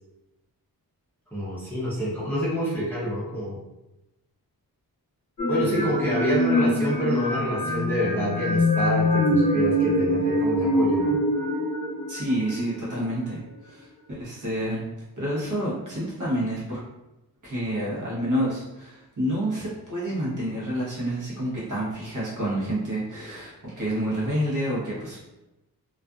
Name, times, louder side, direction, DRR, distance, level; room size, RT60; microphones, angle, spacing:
voice 1, 1.3-3.6 5.5-11.2, equal, 5° left, -9 dB, 0.6 m, -27 dB
sound 1, 5.4-13.1, left 1 dB, 55° left, 0.7 m, -24 dB
voice 2, 5.6-5.9 12.1-14.9 15.2-16.8 17.4-25.2, right 1 dB, 55° right, -7 dB, 1.0 m, -29 dB
2.4 x 2.4 x 2.2 m, 0.97 s
wide cardioid pair, 160°, 37 cm